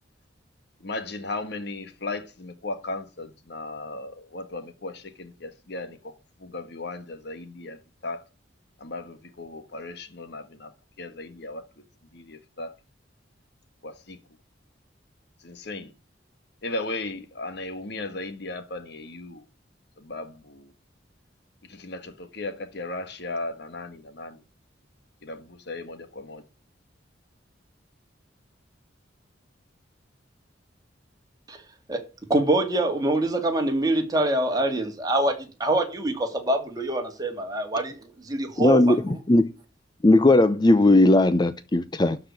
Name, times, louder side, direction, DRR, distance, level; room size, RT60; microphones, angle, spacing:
voice 1, 0.8-6.1 6.4-8.2 8.8-10.7 11.0-11.6 12.1-12.7 13.8-14.2 15.4-15.9 16.6-19.4 20.0-20.7 21.6-24.4 25.2-26.4, left 2 dB, 60° left, 1.5 m, -36 dB
voice 2, 32.3-39.2, right 1 dB, 20° right, 2.2 m, -25 dB
voice 3, 38.6-39.5 40.0-42.2, left 2 dB, 20° left, 0.5 m, -18 dB
12.0 x 4.9 x 7.0 m
head